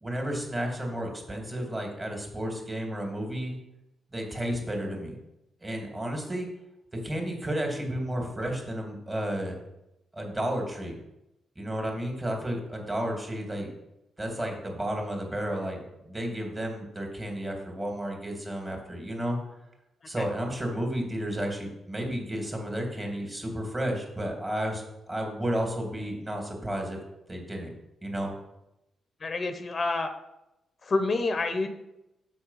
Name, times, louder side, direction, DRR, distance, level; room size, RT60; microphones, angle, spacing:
voice 1, 0.0-3.6 4.1-5.2 5.6-6.5 7.0-9.6 10.1-10.9 11.6-13.7 14.2-19.4 20.1-27.0 27.3-27.7 28.0-28.3, right 1 dB, 25° right, 1 dB, 2.3 m, -32 dB
voice 2, 29.2-30.1 30.8-31.7, left 3 dB, 45° left, 8 dB, 0.7 m, -27 dB
7.0 x 4.5 x 5.6 m, 0.90 s
cardioid pair, 70°, 0 cm